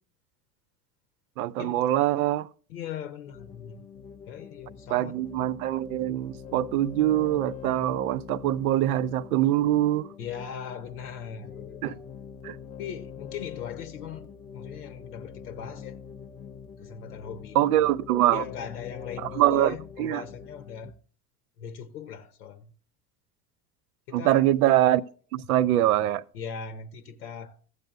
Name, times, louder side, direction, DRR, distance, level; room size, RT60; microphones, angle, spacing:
voice 1, 1.4-2.5 4.9-10.1 11.8-12.0 12.4-12.6 17.5-18.4 19.2-20.2 24.1-25.0 25.3-26.2, right 13 dB, 65° right, 0.5 m, -24 dB
voice 2, 2.7-3.8 4.3-5.1 10.2-12.0 12.8-16.0 16.8-17.7 18.3-20.9 21.6-22.7 24.1-24.4 26.3-27.6, left 8 dB, 70° left, 0.8 m, -39 dB
sound 1, 3.3-20.9, left 7 dB, 20° left, 0.3 m, -44 dB
14.0 x 8.1 x 2.3 m
figure-of-eight pair, 70°, 47 cm